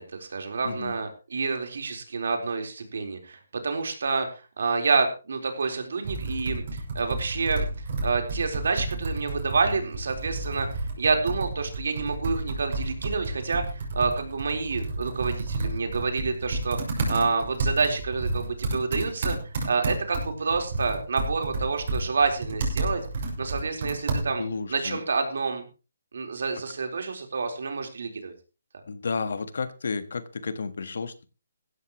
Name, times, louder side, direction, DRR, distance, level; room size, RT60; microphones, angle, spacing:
voice 1, 0.0-7.7 8.0-16.8 17.1-19.4 19.6-23.0 23.4-24.4 24.7-25.6 26.1-28.3, right 4 dB, 70° right, 4 dB, 4.1 m, -28 dB
voice 2, 0.6-1.0 24.4-25.0 28.9-31.3, left 4 dB, 70° left, 13 dB, 1.5 m, -32 dB
Computer keyboard, 6.0-24.6, right 2 dB, 45° right, 6.1 m, -31 dB
16.0 x 14.0 x 3.1 m, 0.32 s
hypercardioid pair, 165°, 0 cm